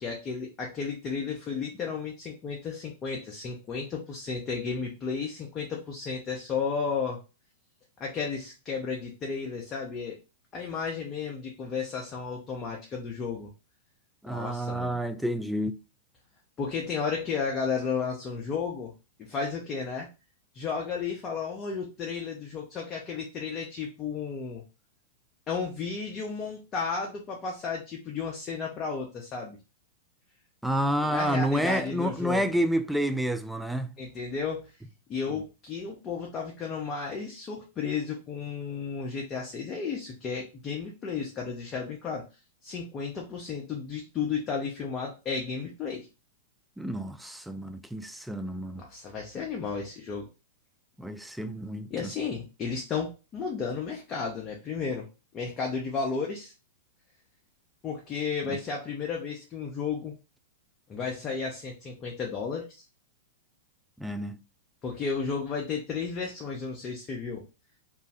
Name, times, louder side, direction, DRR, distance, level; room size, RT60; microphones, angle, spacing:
voice 1, 0.0-7.2 8.0-10.2 10.5-13.5 14.2-14.9 16.6-18.9 19.2-20.1 20.5-24.6 25.5-29.6 31.0-32.5 34.0-34.7 35.1-42.3 42.6-46.1 48.8-50.3 51.9-55.1 55.3-56.5 57.8-60.1 60.9-62.8 64.8-67.4, left 5 dB, 30° left, 0.6 m, -33 dB
voice 2, 14.2-15.7 30.6-34.0 46.8-48.8 51.0-52.1 58.5-58.6 64.0-64.4, equal, 5° right, 0.3 m, -29 dB
2.5 x 2.1 x 3.4 m
figure-of-eight pair, 100°, 0 cm